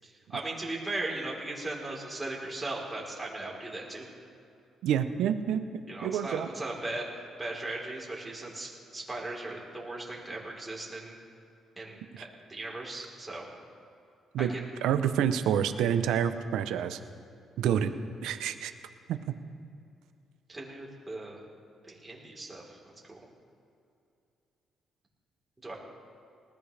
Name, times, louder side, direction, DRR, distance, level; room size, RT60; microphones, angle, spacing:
voice 1, 0.0-4.1 5.9-7.0 7.4-11.2 11.8-13.5 14.4-14.6 20.5-21.4 21.9-22.8 23.1-23.2 25.6-25.8, right 2 dB, 15° right, -3 dB, 4.0 m, -38 dB
voice 2, 4.8-5.6 6.0-6.5 12.1-12.2 14.3-14.5 14.8-17.0 17.6-17.9 18.2-18.7 19.1-19.3, right 9 dB, 85° right, 9 dB, 0.8 m, -28 dB
19.5 x 15.5 x 3.4 m, 2.6 s
cardioid pair, 90°, 0 cm